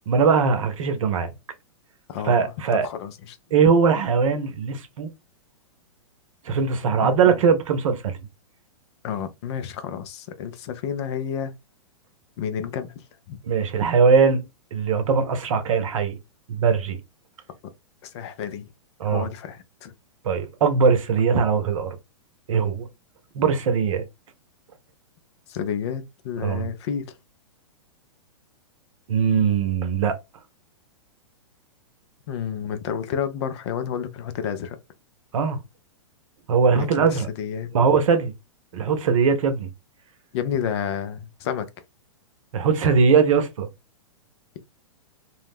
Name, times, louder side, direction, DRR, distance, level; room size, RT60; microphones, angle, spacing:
voice 1, 0.1-1.3 2.2-2.9 3.5-5.1 6.4-8.2 13.5-14.4 14.7-16.2 16.5-17.0 19.0-19.3 20.2-22.0 22.5-22.9 23.3-24.0 26.4-26.7 29.1-30.1 35.3-35.6 36.5-37.3 37.7-38.3 38.7-39.7 42.5-43.7, right 5 dB, 70° right, 0.7 m, -20 dB
voice 2, 2.1-3.4 7.0-7.4 9.0-11.5 12.4-12.9 13.3-13.4 18.0-18.7 19.1-19.9 25.5-27.1 32.3-34.8 36.7-37.7 40.3-41.7, left 8 dB, 50° left, 0.5 m, -30 dB
2.3 x 2.0 x 3.3 m
hypercardioid pair, 120°, 18 cm